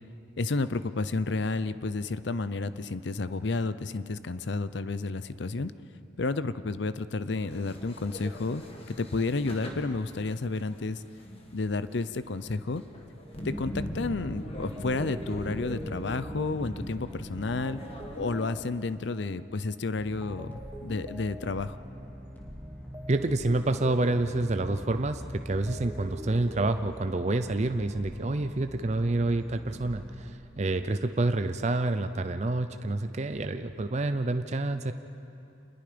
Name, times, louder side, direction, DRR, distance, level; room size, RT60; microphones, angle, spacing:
voice 1, 0.4-5.7 6.2-8.6 8.9-11.0 11.5-12.8 13.4-17.8 18.2-21.8, left 3 dB, 65° left, 14 dB, 0.6 m, -31 dB
sound 1, 7.4-18.5, equal, 30° left, 1.8 m, -41 dB
sound 2, 13.2-14.2 14.8-19.9 20.2-25.2 25.5-27.7, equal, 15° right, 1.4 m, -46 dB
sound 3, 20.0-30.3, equal, 10° left, 2.5 m, -44 dB
voice 2, 23.1-34.9, right 2 dB, 35° right, 8 dB, 0.5 m, -28 dB
27.5 x 21.5 x 5.1 m, 2.8 s
head